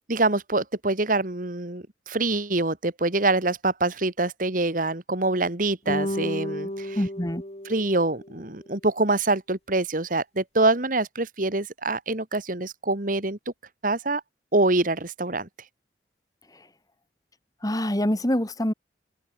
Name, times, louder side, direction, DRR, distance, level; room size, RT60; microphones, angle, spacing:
voice 1, 0.1-7.0 7.7-13.4 13.8-14.2 14.5-15.5, right 2 dB, 50° right, 2.2 m, -25 dB
sound 1, 5.9-8.4, equal, 40° left, 7.1 m, -32 dB
voice 2, 6.9-7.4 17.6-18.7, equal, 20° left, 2.3 m, -25 dB
open air
head